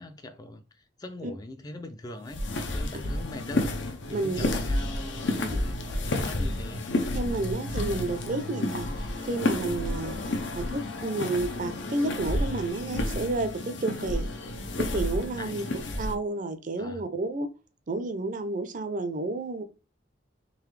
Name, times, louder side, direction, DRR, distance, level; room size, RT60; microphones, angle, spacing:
voice 1, 0.0-2.4 2.7-3.7 4.1-6.8 8.8-8.9 10.1-10.3 14.1-14.2 15.4-15.5 15.9-16.0 16.8-17.0, left 1 dB, 20° left, 0.3 m, -42 dB
sound 1, 2.2-16.2, left 1 dB, 80° left, 0.7 m, -31 dB
voice 2, 4.1-4.6 5.4-5.6 7.1-8.9 9.2-10.2 10.6-14.3 14.8-15.6 16.0-17.5 17.9-19.6, right 2 dB, 45° right, 0.5 m, -31 dB
3.9 x 3.0 x 3.2 m
head